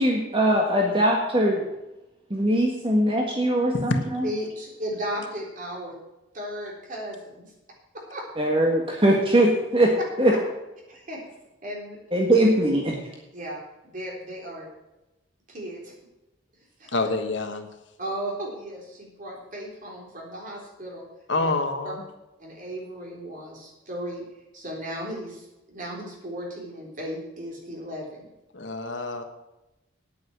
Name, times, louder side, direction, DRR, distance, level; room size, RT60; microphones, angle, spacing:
voice 1, 0.0-1.6 2.3-4.3 8.4-10.3 12.1-13.0, right 1 dB, 30° right, 0 dB, 1.5 m, -21 dB
voice 2, 4.2-5.9 6.3-7.5 8.1-8.2 10.9-11.2 11.6-12.0 13.3-14.7 15.5-15.9 16.8-16.9 18.0-21.0 21.4-21.5 21.8-21.9 22.4-24.2 24.5-28.3, equal, 45° right, -2 dB, 3.8 m, -35 dB
voice 3, 16.9-17.7 21.3-22.0 28.5-29.2, left 2 dB, 80° left, 6 dB, 1.4 m, -27 dB
9.5 x 9.0 x 7.3 m, 0.97 s
head